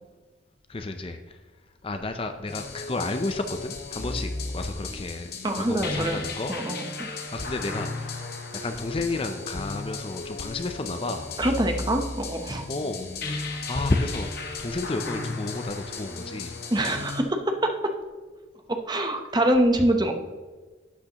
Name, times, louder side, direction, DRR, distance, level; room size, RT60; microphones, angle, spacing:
voice 1, 0.7-1.4 1.8-5.3 5.6-6.5 7.2-11.4 12.7-14.3 14.6-16.6, left 2 dB, 25° left, 7 dB, 0.5 m, -31 dB
sound 1, 2.5-17.2, left 3 dB, 50° left, 1.2 m, -35 dB
voice 2, 5.4-6.2 6.5-7.1 11.4-12.6 16.7-17.9 18.7-20.1, right 1 dB, 20° right, 5 dB, 0.8 m, -25 dB
12.0 x 8.4 x 2.9 m, 1.4 s
head